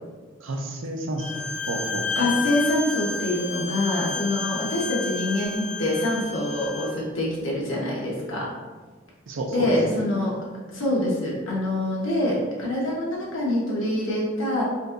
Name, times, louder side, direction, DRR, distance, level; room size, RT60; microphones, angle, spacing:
voice 1, 0.4-2.3 9.3-10.0, right 1 dB, 80° right, 2 dB, 0.5 m, -31 dB
Bowed string instrument, 1.2-6.9, left 4 dB, 35° left, 0.5 m, -31 dB
voice 2, 2.1-8.5 9.5-10.3 10.7-14.6, left 1 dB, 85° left, -5 dB, 1.1 m, -25 dB
4.1 x 2.7 x 2.5 m, 1.4 s
head